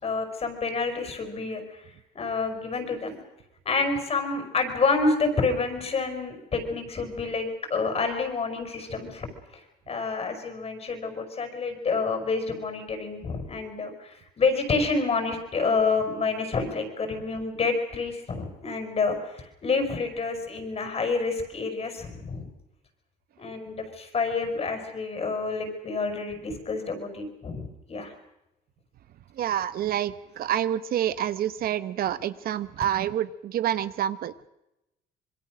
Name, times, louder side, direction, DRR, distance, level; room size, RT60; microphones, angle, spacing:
voice 1, 0.0-1.8 2.1-3.2 3.7-9.3 9.5-9.6 9.9-22.5 23.4-28.1, left 4 dB, 35° left, 7 dB, 5.6 m, -28 dB
voice 2, 29.4-34.5, right 11 dB, 60° right, 14 dB, 1.1 m, -28 dB
26.0 x 22.0 x 6.3 m, 0.91 s
cardioid pair, 110°, 17 cm